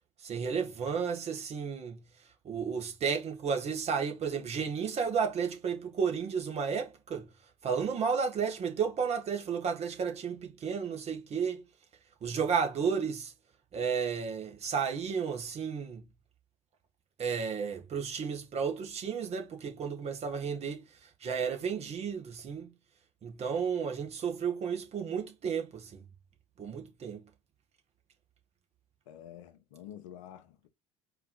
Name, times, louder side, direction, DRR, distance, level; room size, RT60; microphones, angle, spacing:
voice 1, 0.2-2.0 2.4-7.3 7.6-11.6 12.2-13.3 13.7-16.0 17.2-20.8 21.2-22.7 23.2-26.0 26.6-27.2, right 6 dB, 40° right, 1.5 m, -32 dB
voice 2, 29.1-30.7, left 11 dB, 75° left, 0.9 m, -48 dB
4.8 x 2.9 x 3.7 m
hypercardioid pair, 70°, 17 cm